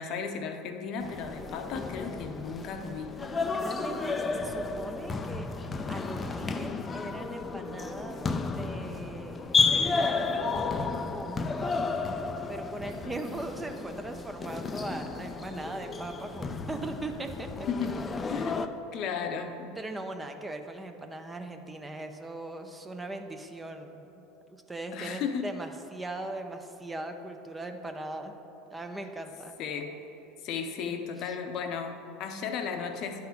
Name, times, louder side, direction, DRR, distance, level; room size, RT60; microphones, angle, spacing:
voice 1, 0.0-3.1 13.0-13.2 17.7-18.0 18.3-18.6 18.9-19.8 24.9-25.5 29.6-29.9 30.4-33.2, left 6 dB, 55° left, 5 dB, 0.8 m, -35 dB
sound 1, 1.0-18.7, left 4 dB, 25° left, 0.5 m, -32 dB
voice 2, 3.5-5.5 5.9-11.9 12.5-17.5 19.8-24.2 24.5-28.3 28.7-29.5 31.2-31.4, right 2 dB, 15° right, 5 dB, 0.7 m, -40 dB
10.5 x 3.8 x 5.8 m, 2.9 s
hypercardioid pair, 85°, 0 cm